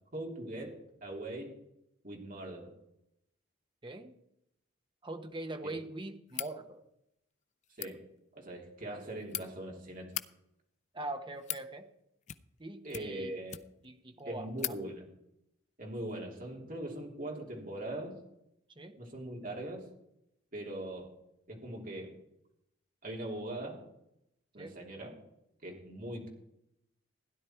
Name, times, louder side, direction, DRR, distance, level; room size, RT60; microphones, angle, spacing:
voice 1, 0.1-0.7 1.0-1.5 2.0-2.7 7.8-8.0 8.3-10.1 12.8-13.6 14.2-15.0 15.8-18.1 19.0-19.8 20.5-21.1 21.5-22.1 23.0-23.8 24.5-25.2 25.6-26.3, right 1 dB, 45° right, 0 dB, 3.3 m, -41 dB
voice 2, 3.8-4.1 5.0-6.8 10.9-11.9 12.6-13.4 13.8-14.8 18.8-19.0 24.6-24.8, right 2 dB, 25° right, 7 dB, 1.0 m, -42 dB
sound 1, 6.3-6.6 7.6-7.9 8.9-9.4 10.0-10.3 11.1-11.7 12.2-12.6 12.9-13.9 14.2-14.3 14.6-14.8, left 12 dB, 35° left, 0.5 m, -39 dB
16.0 x 10.5 x 4.5 m, 0.82 s
head